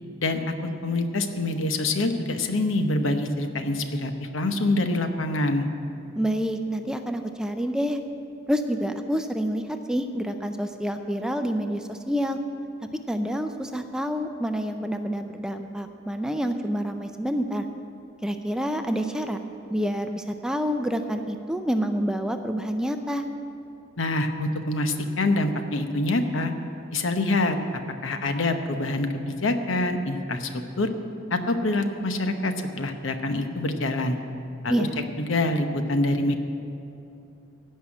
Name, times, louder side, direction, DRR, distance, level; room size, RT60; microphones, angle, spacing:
voice 1, 0.2-5.7 24.0-26.5 26.9-27.6 28.0-30.5 30.8-30.9 31.3-34.2 34.6-34.9 35.2-36.4, left 2 dB, 75° left, 7 dB, 1.0 m, -25 dB
voice 2, 6.1-8.0 8.5-12.4 13.1-17.6 18.2-19.4 19.7-23.2 34.7-35.0, equal, 5° right, 6 dB, 0.4 m, -28 dB
16.0 x 5.6 x 8.8 m, 2.7 s
head